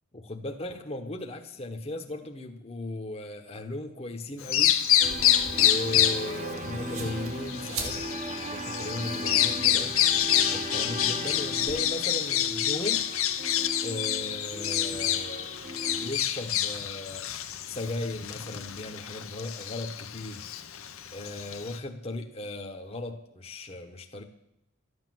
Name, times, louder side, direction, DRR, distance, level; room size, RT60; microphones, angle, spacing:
voice 1, 0.1-4.7 5.5-8.0 8.5-10.0 10.4-13.1 13.7-17.3 17.7-20.5 21.1-24.2, left 2 dB, 30° left, 3 dB, 1.1 m, -37 dB
Bird vocalization bird call bird song, 4.4-21.8, left 11 dB, 85° left, 1.0 m, -28 dB
sound 1, 4.9-11.7, right 3 dB, 85° right, 3.2 m, -44 dB
sound 2, 5.0-16.1, right 1 dB, 35° right, 1.1 m, -38 dB
13.5 x 9.6 x 7.7 m, 0.82 s
head